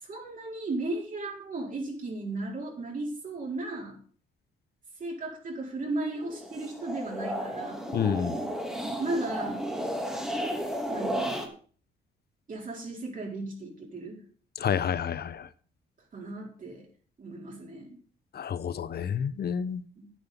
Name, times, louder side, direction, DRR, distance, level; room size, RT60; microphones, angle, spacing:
voice 1, 0.0-4.0 5.0-7.9 9.0-9.6 10.9-11.4 12.5-14.2 16.1-16.9 17.2-18.0 20.0-20.1, right 2 dB, 40° right, -1 dB, 4.6 m, -35 dB
sound 1, 6.2-11.5, equal, 5° right, 3.1 m, -33 dB
voice 2, 7.9-8.4 14.6-15.5 18.3-19.8, left 8 dB, 55° left, 16 dB, 0.9 m, -29 dB
10.0 x 9.7 x 5.3 m, 0.43 s
cardioid pair, 90°, 20 cm